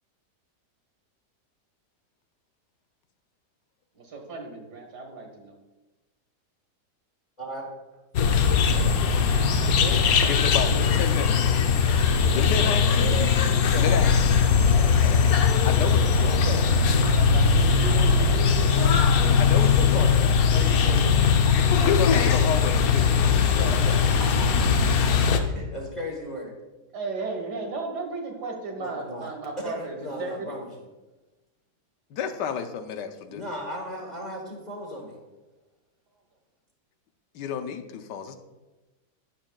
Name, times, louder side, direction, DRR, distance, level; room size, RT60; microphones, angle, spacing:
voice 1, 4.0-5.6 10.5-11.1 12.0-12.5 17.1-19.0 20.4-21.0 21.5-21.7 22.2-22.3 26.9-30.7, right 3 dB, 75° right, 2 dB, 2.1 m, -36 dB
voice 2, 7.4-7.7 9.6-10.0 12.8-15.6 16.3-16.6 19.8-20.2 23.6-24.7 25.0-26.5 28.8-29.3 29.6-30.7 33.3-35.2, equal, 25° left, -3 dB, 1.4 m, -36 dB
sound 1, 8.1-25.4, left 5 dB, 65° left, 1.1 m, -20 dB
voice 3, 10.3-11.5 12.3-13.3 13.8-14.1 15.6-16.7 19.4-20.3 21.8-23.7 32.1-33.5 37.3-38.4, left 7 dB, 90° left, 8 dB, 1.4 m, -32 dB
11.5 x 9.3 x 2.3 m, 1.1 s
omnidirectional pair, 1.8 m